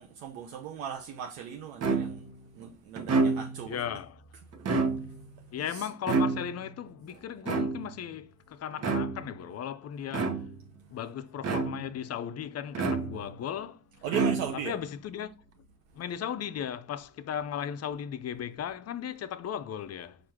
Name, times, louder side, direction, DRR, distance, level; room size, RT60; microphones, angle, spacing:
voice 1, 0.0-2.3 2.5-3.8 5.7-5.9 14.0-14.8, right 8 dB, 85° right, 0.6 m, -37 dB
sound 1, 1.8-2.4 3.0-3.7 4.5-5.3 6.1-6.8 7.5-8.1 8.8-9.4 10.1-10.7 11.4-12.0 12.8-13.4 14.1-14.8, right 4 dB, 45° right, 1.0 m, -29 dB
voice 2, 3.7-4.2 5.5-10.4 10.9-13.8 14.5-15.3 15.9-20.2, left 9 dB, 45° left, 0.5 m, -36 dB
4.7 x 2.5 x 4.3 m
hypercardioid pair, 55°, 35 cm